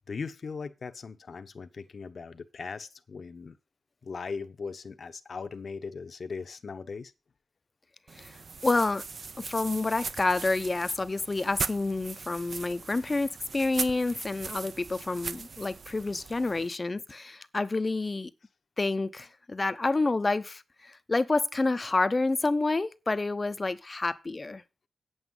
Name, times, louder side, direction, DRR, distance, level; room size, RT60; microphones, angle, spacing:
voice 1, 0.1-3.6 4.0-7.1, left 5 dB, 55° left, 1.0 m, -39 dB
sound 1, 8.1-16.7, right 4 dB, 50° right, 0.8 m, -39 dB
voice 2, 8.6-9.0 9.4-18.3 18.8-24.6, left 3 dB, 30° left, 0.8 m, -28 dB
8.7 x 8.1 x 5.5 m
cardioid pair, 90°, 0 cm